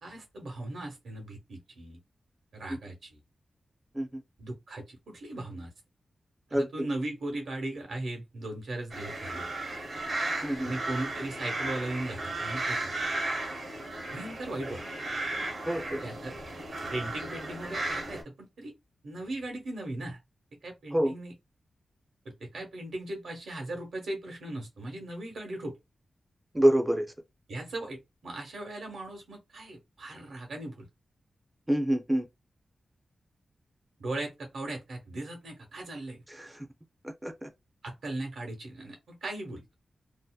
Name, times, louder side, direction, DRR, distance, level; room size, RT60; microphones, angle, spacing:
voice 1, 0.0-2.0 2.5-3.2 4.4-5.7 6.5-9.5 10.6-12.9 14.1-14.8 16.0-16.3 16.8-18.7 19.0-20.2 20.6-21.3 22.2-25.7 27.5-30.9 34.0-36.2 37.8-39.7, right 2 dB, 90° right, 0.9 m, -38 dB
voice 2, 6.5-6.9 10.4-10.7 15.7-16.0 20.9-21.1 26.5-27.1 31.7-32.3 36.3-36.7 37.0-37.5, right 1 dB, 10° right, 0.4 m, -27 dB
sound 1, 8.9-18.2, right 2 dB, 65° right, 0.8 m, -35 dB
2.6 x 2.1 x 2.2 m
wide cardioid pair, 140°, 0 cm